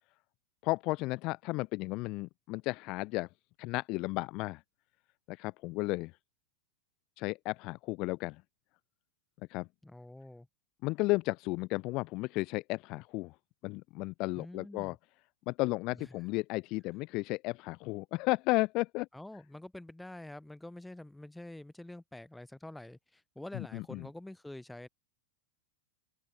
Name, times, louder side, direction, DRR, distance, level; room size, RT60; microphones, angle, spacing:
voice 1, 0.6-3.3 3.6-4.6 5.3-6.2 7.2-8.4 9.5-9.7 10.8-13.4 13.6-15.0 15.5-19.1 23.5-24.1, left 23 dB, 45° left, 0.3 m, -33 dB
voice 2, 9.8-10.5 14.3-15.0 15.9-16.2 19.1-24.9, left 1 dB, 5° left, 1.9 m, -47 dB
supercardioid pair, 140°, 0 cm